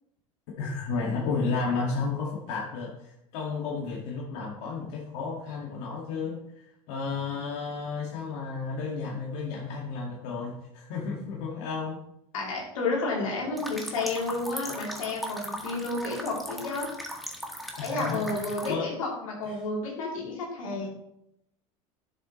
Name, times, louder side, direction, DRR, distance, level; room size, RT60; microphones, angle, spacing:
voice 1, 0.6-6.4 6.9-12.0 17.8-18.9 19.4-19.6, left 4 dB, 70° left, -3 dB, 1.9 m, -32 dB
voice 2, 12.3-16.9 17.8-21.0, left 3 dB, 90° left, -3 dB, 3.1 m, -31 dB
sound 1, 13.6-18.7, equal, ahead, 1.7 m, -38 dB
11.5 x 7.1 x 3.1 m, 0.80 s
hypercardioid pair, 90°, 17 cm